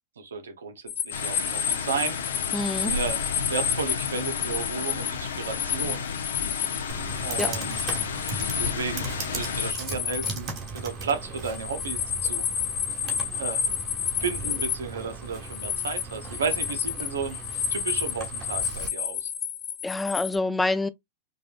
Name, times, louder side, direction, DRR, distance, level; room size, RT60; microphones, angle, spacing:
voice 1, 0.2-2.4 2.8-6.0 7.2-7.8 8.6-12.5 13.3-13.6 14.2-17.4 17.7-19.3, right 5 dB, 90° right, 0.9 m, -33 dB
sound 1, 0.9-14.7 15.1-20.4, left 8 dB, 35° left, 0.9 m, -30 dB
sound 2, 1.1-9.7, left 5 dB, 85° left, 0.8 m, -32 dB
voice 2, 2.5-2.9 7.4-7.5 19.8-20.9, left 2 dB, 10° left, 0.4 m, -26 dB
Computer keyboard, 6.9-18.9, right 4 dB, 45° right, 1.8 m, -38 dB
5.2 x 2.5 x 2.5 m
hypercardioid pair, 110°, 0 cm